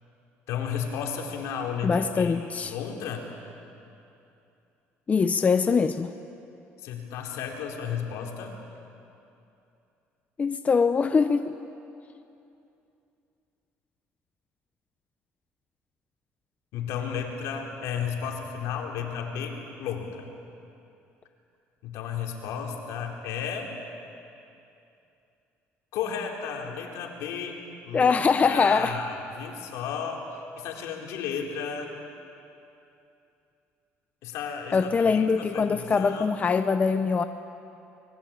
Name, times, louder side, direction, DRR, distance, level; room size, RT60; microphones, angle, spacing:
voice 1, 0.5-3.3 6.8-8.6 16.7-20.2 21.8-23.7 25.9-31.9 34.2-36.3, left 7 dB, 75° left, 1 dB, 4.0 m, -33 dB
voice 2, 1.8-2.7 5.1-6.1 10.4-11.5 27.9-28.9 34.7-37.3, left 5 dB, 30° left, 9 dB, 0.8 m, -23 dB
25.0 x 21.5 x 8.9 m, 2.7 s
cardioid pair, 105°, 5 cm